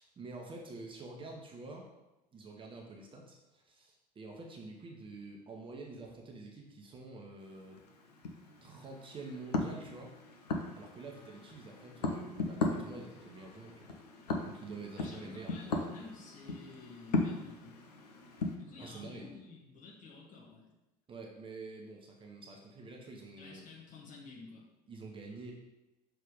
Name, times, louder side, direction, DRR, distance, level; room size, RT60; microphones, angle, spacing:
voice 1, 0.0-1.9 2.3-7.8 8.6-10.1 10.7-13.9 14.4-15.5 18.8-19.3 21.1-23.6 24.9-25.5, right 3 dB, 25° right, 0 dB, 1.0 m, -47 dB
sound 1, 7.4-18.6, left 3 dB, 70° left, 0.8 m, -38 dB
voice 2, 15.0-17.8 18.6-20.7 23.4-24.7, left 4 dB, 40° left, -3 dB, 2.0 m, -51 dB
6.4 x 3.4 x 5.3 m, 0.99 s
figure-of-eight pair, 70°, 21 cm